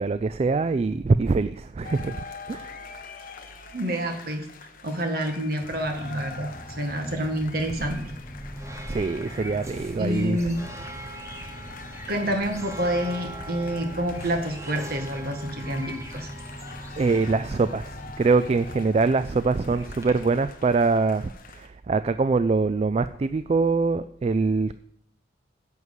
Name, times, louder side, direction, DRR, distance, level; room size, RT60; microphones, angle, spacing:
voice 1, 0.0-2.8 8.9-10.4 17.0-24.8, right 4 dB, 35° right, 12 dB, 0.3 m, -24 dB
sound 1, 1.8-21.7, left 4 dB, 50° left, 1.1 m, -45 dB
voice 2, 3.7-4.5 4.8-8.0 10.0-10.6 12.1-16.3, equal, 55° right, 5 dB, 1.7 m, -28 dB
sound 2, 5.6-18.8, equal, 15° left, 0.7 m, -42 dB
sound 3, 7.7-20.1, right 1 dB, 15° right, 1.1 m, -42 dB
10.5 x 4.7 x 8.1 m, 0.71 s
head